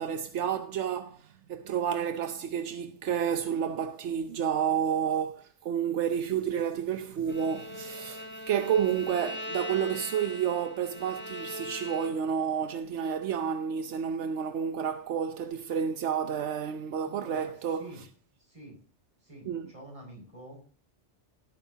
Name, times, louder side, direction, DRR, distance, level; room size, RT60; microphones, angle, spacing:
voice 1, 0.0-17.8 19.5-19.7, right 8 dB, 85° right, 1.1 m, -30 dB
Bowed string instrument, 7.3-12.4, left 1 dB, 10° left, 1.9 m, -41 dB
voice 2, 17.0-18.0 18.4-18.8 19.2-20.6, right 1 dB, 30° right, 6.4 m, -48 dB
16.5 x 9.1 x 2.8 m
omnidirectional pair, 1.2 m